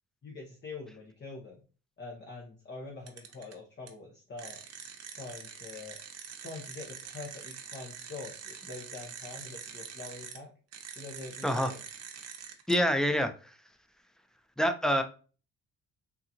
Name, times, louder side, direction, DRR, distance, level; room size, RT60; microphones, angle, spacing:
voice 1, 0.2-1.6 2.0-4.6 5.1-6.0 6.4-10.5 10.9-11.8, left 3 dB, 35° left, -1 dB, 0.8 m, -44 dB
sound 1, 3.1-3.5 3.9-4.0 4.4-10.4 10.7-12.7, right 7 dB, 55° right, 0.7 m, -45 dB
voice 2, 12.7-13.5 14.6-15.0, equal, ahead, 7 dB, 0.4 m, -26 dB
3.6 x 2.4 x 2.8 m, 0.36 s
cardioid pair, 90°, 30 cm